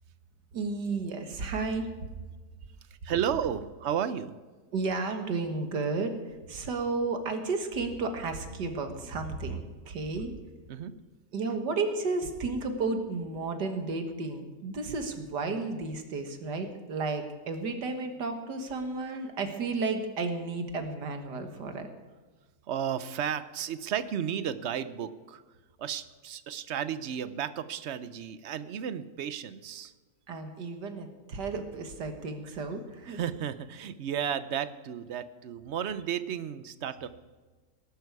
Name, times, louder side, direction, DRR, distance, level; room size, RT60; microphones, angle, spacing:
voice 1, 0.5-2.1 4.7-10.3 11.3-21.9 30.3-33.2, right 3 dB, 80° right, 6 dB, 2.1 m, -33 dB
voice 2, 3.0-4.4 10.7-10.9 22.7-25.4 25.8-29.9 33.1-37.1, right 9 dB, 60° right, 13 dB, 0.7 m, -33 dB
18.5 x 11.5 x 4.8 m, 1.3 s
omnidirectional pair, 1.8 m